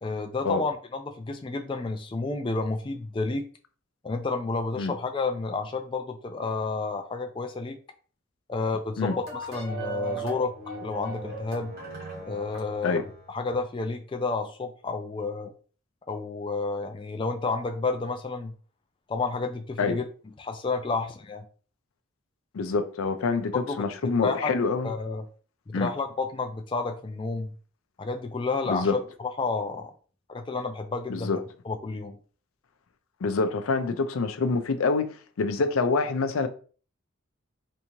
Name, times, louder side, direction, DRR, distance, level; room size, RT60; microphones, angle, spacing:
voice 1, 0.0-3.5 4.0-7.8 8.5-10.5 10.8-11.7 12.3-15.5 16.1-18.5 19.1-20.0 20.4-21.4 23.5-23.8 24.2-24.5 24.8-25.2 25.7-27.5 28.0-29.9 30.3-31.4 31.7-32.2, left 3 dB, 25° left, 0.3 m, -30 dB
sound 1, 9.0-13.4, right 3 dB, 50° right, 1.3 m, -38 dB
voice 2, 22.5-24.9 25.7-25.9 28.7-29.0 31.1-31.4 33.2-36.5, left 4 dB, 90° left, 0.5 m, -26 dB
3.4 x 2.7 x 2.9 m
head